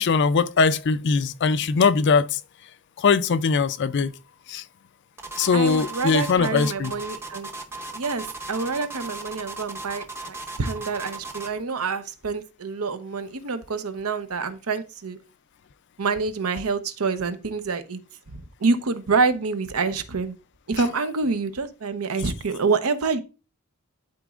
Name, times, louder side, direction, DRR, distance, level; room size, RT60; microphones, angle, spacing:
voice 1, 0.0-2.4 3.0-4.1 4.5-4.6 5.4-6.9, left 5 dB, 50° left, 0.4 m, -21 dB
sound 1, 5.2-11.6, right 2 dB, 10° right, 0.6 m, -37 dB
voice 2, 5.5-7.5 7.9-15.2 16.0-18.0 18.3-20.3 20.7-23.2, right 4 dB, 75° right, 0.8 m, -27 dB
11.5 x 4.1 x 2.4 m
head